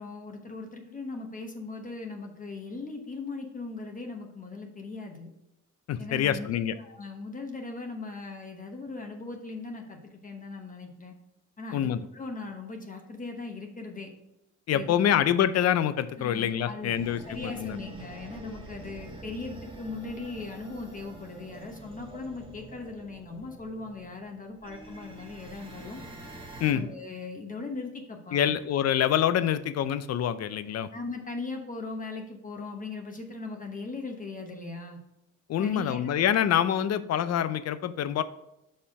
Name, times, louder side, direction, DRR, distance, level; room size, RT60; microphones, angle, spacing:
voice 1, 0.0-5.3 6.0-11.1 11.6-14.1 14.7-15.2 16.2-17.0 17.3-26.0 26.7-28.5 30.9-35.0 35.6-36.0, left 3 dB, 25° left, 3 dB, 1.0 m, -39 dB
voice 2, 5.9-6.7 11.7-12.1 14.7-17.8 26.6-26.8 28.3-30.9 35.5-38.2, left 10 dB, 55° left, 14 dB, 0.5 m, -26 dB
sound 1, 16.9-26.7, right 2 dB, 15° right, 1.3 m, -46 dB
5.7 x 4.4 x 4.7 m, 0.88 s
cardioid pair, 90°, 30 cm